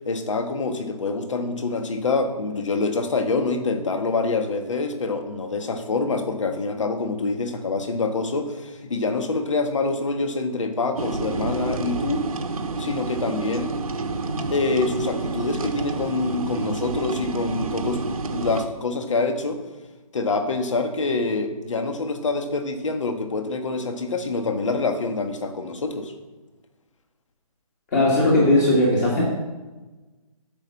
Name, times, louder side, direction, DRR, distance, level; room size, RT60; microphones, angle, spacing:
voice 1, 0.0-12.3 12.8-13.7 14.5-19.6 20.1-26.1, left 3 dB, 55° left, 6 dB, 1.5 m, -26 dB
sound 1, 11.0-18.7, right 3 dB, 70° right, 1.2 m, -29 dB
voice 2, 27.9-29.2, left 1 dB, 25° left, -4 dB, 1.9 m, -18 dB
10.5 x 5.6 x 7.6 m, 1.2 s
hypercardioid pair, 165°, 19 cm